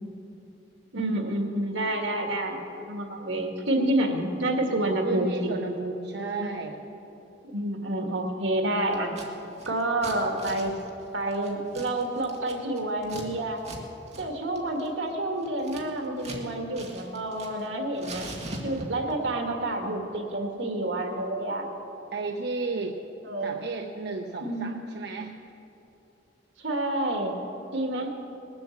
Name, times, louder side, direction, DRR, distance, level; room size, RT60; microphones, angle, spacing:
voice 1, 0.9-5.5 6.4-6.6 7.5-9.1 9.7-10.7 11.1-13.6 14.2-18.3 18.6-21.7 23.2-23.5 24.4-24.8 26.6-27.4 27.7-28.1, right 1 dB, 90° right, 3 dB, 1.8 m, -28 dB
voice 2, 5.0-6.8 22.1-23.0 23.4-25.4, right 3 dB, 65° right, 3 dB, 0.7 m, -33 dB
Scissors, 8.9-9.3 9.5-13.3 13.6-13.8 14.1-14.2 14.6-16.4 16.7-17.7 18.0-19.1, right 2 dB, 40° right, 1.8 m, -41 dB
19.5 x 7.6 x 7.2 m, 3.0 s
head